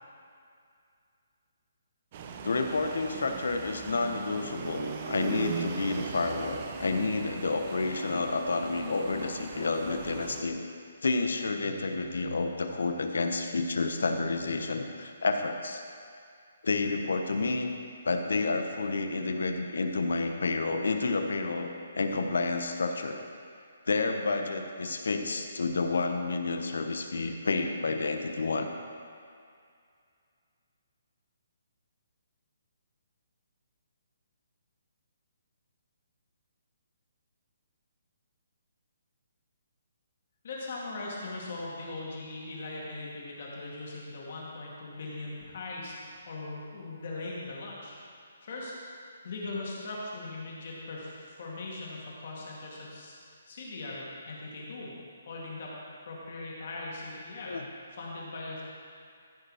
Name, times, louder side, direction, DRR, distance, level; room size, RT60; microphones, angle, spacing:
sound 1, 2.1-10.4, right 6 dB, 25° right, 0.5 m, -40 dB
voice 1, 2.4-10.6 11.0-15.8 16.6-17.7 18.0-23.2 23.9-28.7 57.5-57.6, left 3 dB, 80° left, 6 dB, 1.0 m, -30 dB
voice 2, 40.4-47.9 48.4-48.8 49.0-54.9 55.3-55.7 56.0-57.6 57.9-58.6, left 2 dB, 40° left, -4 dB, 2.2 m, -40 dB
14.5 x 5.4 x 4.9 m, 2.3 s
hypercardioid pair, 175°, 0 cm